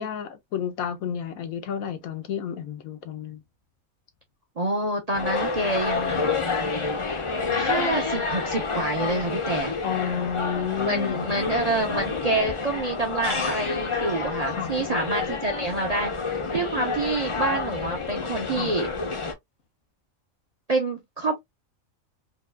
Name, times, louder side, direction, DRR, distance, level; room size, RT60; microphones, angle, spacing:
voice 1, 0.0-3.4 9.8-11.3 14.5-14.7 18.5-18.7, left 8 dB, 85° left, 1.2 m, -31 dB
voice 2, 4.6-6.3 7.6-9.7 10.9-18.9 20.7-21.4, right 2 dB, 40° right, 0.5 m, -27 dB
sound 1, 5.1-19.3, left 4 dB, 40° left, 0.4 m, -29 dB
4.6 x 2.4 x 2.2 m
omnidirectional pair, 1.5 m